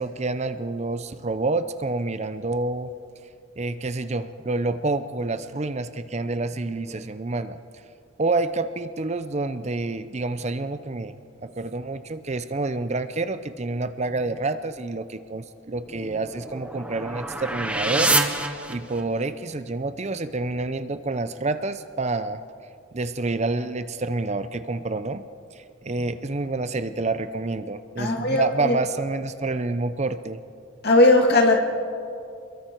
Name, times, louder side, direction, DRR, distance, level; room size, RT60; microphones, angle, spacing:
voice 1, 0.0-2.9 3.6-7.6 8.2-11.1 11.4-22.4 22.9-25.2 25.5-30.4, right 3 dB, 35° right, 11 dB, 0.6 m, -28 dB
sound 1, 15.9-19.3, right 2 dB, 5° right, 1.1 m, -27 dB
voice 2, 28.0-28.8 30.8-31.6, left 2 dB, 50° left, 2 dB, 2.2 m, -18 dB
29.0 x 22.5 x 4.6 m, 2.5 s
head